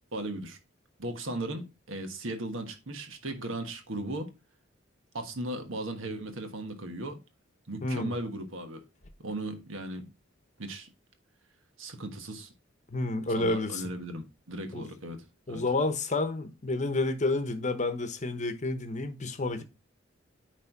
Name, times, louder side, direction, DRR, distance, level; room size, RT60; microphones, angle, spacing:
voice 1, 0.1-0.6 1.0-4.3 5.1-7.2 7.7-8.8 9.2-10.1 10.6-10.9 11.8-12.5 13.3-15.2 15.5-15.6, right 1 dB, 80° right, 1.4 m, -37 dB
voice 2, 7.8-8.1 12.9-13.8 14.7-14.9 15.5-19.6, left 2 dB, 40° left, 0.9 m, -30 dB
9.6 x 3.3 x 4.5 m
head